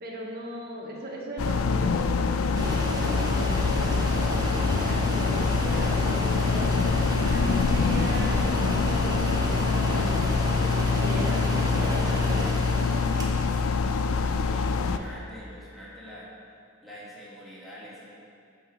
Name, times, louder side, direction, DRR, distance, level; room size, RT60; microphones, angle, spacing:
voice 1, 0.0-10.1 10.6-13.3 14.8-15.1, right 1 dB, 50° right, -2 dB, 1.5 m, -39 dB
sound 1, 1.4-15.0, left 4 dB, 85° left, 0.5 m, -25 dB
sound 2, 2.6-13.7, right 1 dB, 20° right, 0.9 m, -33 dB
voice 2, 14.4-16.3 16.8-18.1, equal, ahead, -8 dB, 2.1 m, -45 dB
8.8 x 4.7 x 6.2 m, 2.4 s
head